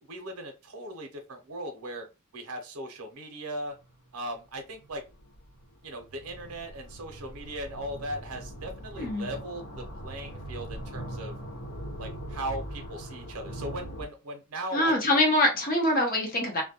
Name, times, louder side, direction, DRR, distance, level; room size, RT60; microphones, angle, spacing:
voice 1, 0.1-2.1 2.3-3.8 4.1-5.0 5.8-11.3 12.0-14.9, right 1 dB, 85° right, 0.6 m, -38 dB
sound 1, 3.8-3.9 4.6-14.1, right 1 dB, 80° left, 1.1 m, -41 dB
voice 2, 9.0-9.3 14.7-16.6, left 1 dB, 40° left, 0.7 m, -24 dB
2.2 x 2.1 x 2.8 m
head